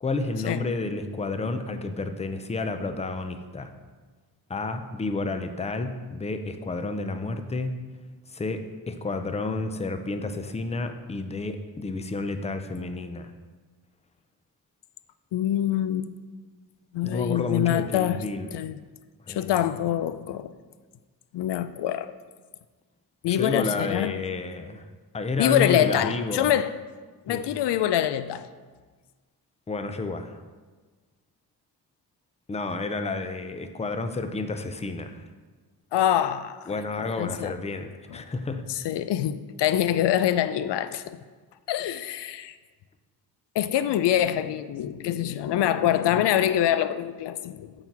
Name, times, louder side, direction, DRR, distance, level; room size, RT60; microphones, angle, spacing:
voice 1, 0.0-3.7 4.5-7.8 8.3-13.3 17.0-18.5 19.3-19.5 23.3-24.9 25.1-26.6 27.3-27.4 29.7-30.4 32.5-35.2 36.7-38.6, left 3 dB, 15° left, 0.4 m, -30 dB
voice 2, 15.3-16.1 16.9-18.2 18.5-18.8 19.3-20.5 21.3-22.1 23.2-24.2 25.4-26.7 27.3-28.5 35.9-36.7 37.0-37.5 38.1-38.2 38.7-41.2 41.7-42.6 43.5-47.7, left 11 dB, 90° left, 0.5 m, -25 dB
8.9 x 4.0 x 5.9 m
wide cardioid pair, 145°, 40 cm